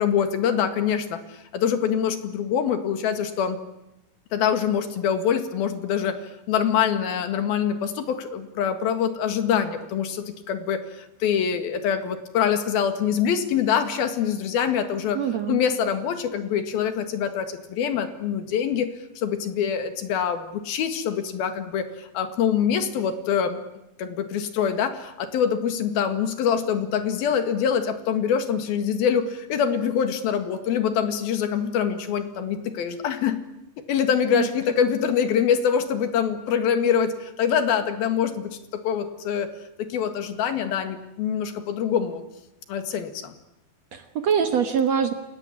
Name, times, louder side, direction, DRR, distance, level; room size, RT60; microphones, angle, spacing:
voice 1, 0.0-3.6 4.3-6.2 6.5-15.2 15.5-23.6 24.0-33.4 33.9-38.5 38.8-39.5 39.8-42.2 42.7-43.3, left 8 dB, 80° left, 9 dB, 3.7 m, -24 dB
voice 2, 15.1-15.6 34.3-34.5 43.9-45.1, right 7 dB, 60° right, 8 dB, 2.0 m, -23 dB
28.5 x 17.5 x 9.9 m, 0.90 s
omnidirectional pair, 4.3 m